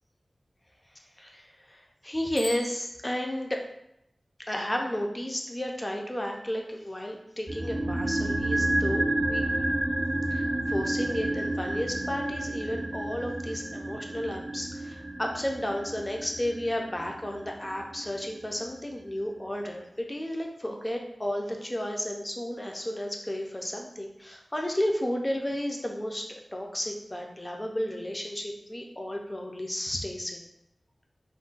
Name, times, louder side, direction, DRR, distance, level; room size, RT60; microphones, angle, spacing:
voice 1, 1.2-3.6 4.5-9.4 10.3-26.3 26.5-30.5, left 1 dB, 20° left, 1 dB, 0.4 m, -33 dB
Bicycle bell, 2.3-3.6, equal, 70° left, 1.2 m, -42 dB
sound 1, 7.5-17.7 18.0-18.1, right 1 dB, 45° right, 0.3 m, -30 dB
2.4 x 2.1 x 3.7 m, 0.80 s
wide cardioid pair, 80°, 0 cm